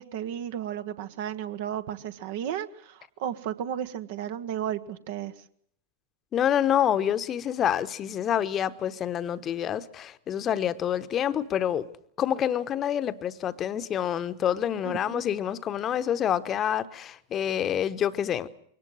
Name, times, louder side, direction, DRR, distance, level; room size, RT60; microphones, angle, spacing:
voice 1, 0.0-5.3 14.8-15.2, right 10 dB, 50° right, 1.3 m, -34 dB
voice 2, 6.3-11.9 12.2-18.5, left 10 dB, 30° left, 1.1 m, -27 dB
22.5 x 19.0 x 7.8 m
figure-of-eight pair, 90°, 0 cm